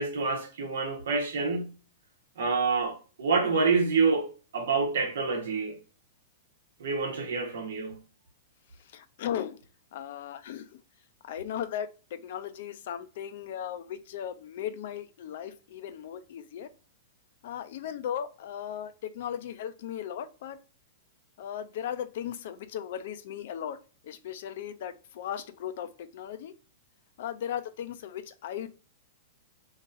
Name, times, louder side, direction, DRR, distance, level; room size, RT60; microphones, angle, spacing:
voice 1, 0.0-1.7 2.4-5.8 6.8-8.0, right 4 dB, 80° right, 1.1 m, -27 dB
voice 2, 8.9-9.6 9.9-10.7 11.2-16.7 17.4-20.6 21.4-23.8 24.0-26.5 27.2-28.7, left 9 dB, 60° left, 0.4 m, -37 dB
2.9 x 2.8 x 2.5 m
hypercardioid pair, 145°, 0 cm